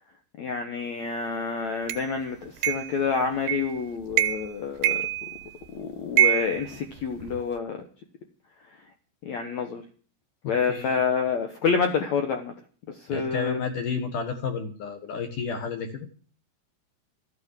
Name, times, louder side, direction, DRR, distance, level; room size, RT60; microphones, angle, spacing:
voice 1, 0.4-5.0 5.7-7.8 9.2-9.8 10.5-12.5 13.0-13.6, left 5 dB, 80° left, 6 dB, 1.6 m, -28 dB
sound 1, 1.9-2.0 2.6-3.0 3.5-3.8 4.1-4.5 4.8-5.6 6.2-7.4, right 13 dB, 75° right, 2.5 m, -25 dB
voice 2, 10.7-11.0 13.1-16.1, left 5 dB, 60° left, 6 dB, 2.4 m, -31 dB
14.0 x 9.6 x 7.4 m, 0.41 s
omnidirectional pair, 5.2 m